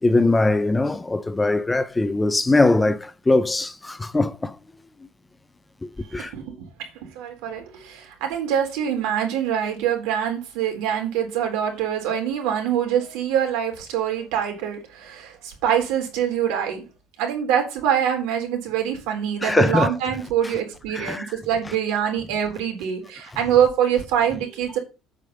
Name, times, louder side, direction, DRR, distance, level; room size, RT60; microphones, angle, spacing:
voice 1, 0.0-4.6 5.8-6.3 19.4-20.0 20.4-20.5 20.9-21.4 21.6-21.7 23.3-23.4, left 2 dB, 10° left, 0.4 m, -21 dB
voice 2, 6.1-6.9 7.2-16.8 17.2-24.8, right 9 dB, 85° right, 3.8 m, -24 dB
8.5 x 5.1 x 6.8 m
cardioid pair, 175°, 0 cm